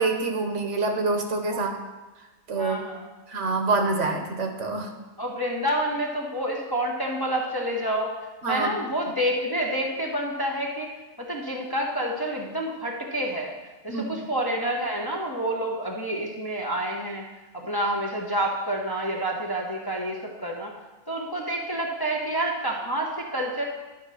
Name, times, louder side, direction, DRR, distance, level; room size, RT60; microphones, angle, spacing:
voice 1, 0.0-1.7 2.5-2.8 3.3-4.9 8.4-8.7 13.9-14.0, right 3 dB, 65° right, 4 dB, 1.3 m, -26 dB
voice 2, 2.5-3.1 5.2-8.1 8.5-10.9 11.2-13.5 13.8-17.2 17.5-20.7 21.1-23.6, right 1 dB, 20° left, -2 dB, 0.9 m, -28 dB
10.5 x 4.4 x 6.2 m, 1.1 s
omnidirectional pair, 1.4 m